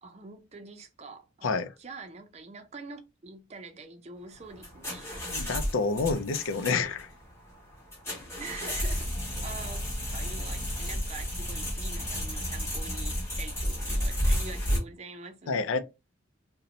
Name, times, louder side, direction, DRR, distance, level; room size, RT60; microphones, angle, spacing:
voice 1, 0.0-5.1 8.3-9.1 9.4-15.6, right 4 dB, 35° right, 0.5 m, -45 dB
sound 1, 4.3-14.8, equal, 15° left, 1.1 m, -32 dB
voice 2, 5.3-7.1 15.5-15.8, left 4 dB, 90° left, 0.5 m, -28 dB
2.7 x 2.1 x 3.9 m
head